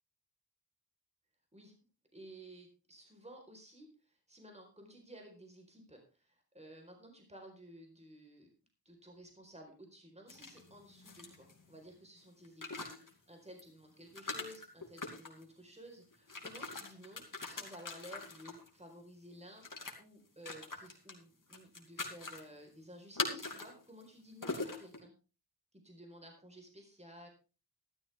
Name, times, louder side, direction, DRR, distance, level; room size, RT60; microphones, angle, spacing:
voice 1, 2.1-8.5 8.8-19.6 20.0-25.1 25.8-27.3, equal, 15° right, 2 dB, 4.4 m, -54 dB
sound 1, 10.3-11.8 12.4-13.1 13.6-13.7 14.1-15.4 16.1-18.7 19.6-19.9 20.4-21.1 21.5-22.4 23.2-23.7 24.0-24.1 24.4-25.0, left 3 dB, 55° left, 3.1 m, -42 dB
13.5 x 13.0 x 3.5 m, 0.33 s
wide cardioid pair, 60°, 39 cm